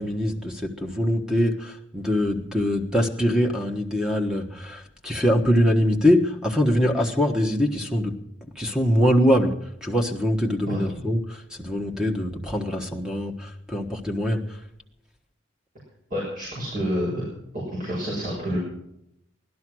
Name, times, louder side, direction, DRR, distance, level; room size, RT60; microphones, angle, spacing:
voice 1, 0.0-8.1 8.5-9.5 9.8-14.6, equal, 5° right, 3 dB, 1.4 m, -23 dB
voice 2, 16.1-17.2 17.5-18.6, equal, 45° right, -6 dB, 6.2 m, -28 dB
16.5 x 12.0 x 6.2 m, 0.79 s
head